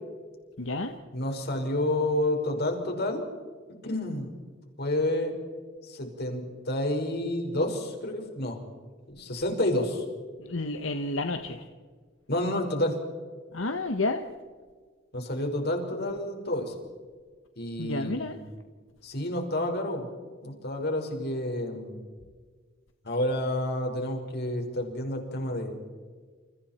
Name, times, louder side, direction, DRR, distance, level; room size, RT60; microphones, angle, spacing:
voice 1, 0.6-0.9 10.4-11.7 13.5-14.2 17.8-18.4, left 2 dB, 80° left, 6 dB, 1.4 m, -30 dB
voice 2, 1.1-3.2 3.8-4.3 4.8-5.3 5.8-8.6 9.1-10.0 12.3-13.0 15.1-16.7 17.6-18.5 19.0-20.1 20.4-22.0 23.0-25.8, left 1 dB, 55° left, 3 dB, 5.1 m, -29 dB
29.5 x 29.0 x 4.5 m, 1.5 s
head